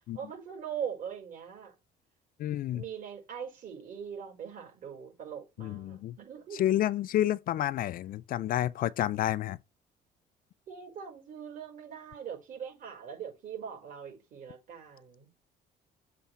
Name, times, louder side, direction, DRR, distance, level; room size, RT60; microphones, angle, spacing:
voice 1, 0.1-1.7 2.7-6.7 10.7-15.3, right 8 dB, 50° right, 4.8 m, -41 dB
voice 2, 2.4-2.8 5.6-6.2 6.6-9.6, left 12 dB, 55° left, 0.5 m, -29 dB
7.5 x 3.4 x 5.5 m
cardioid pair, 110°, 17 cm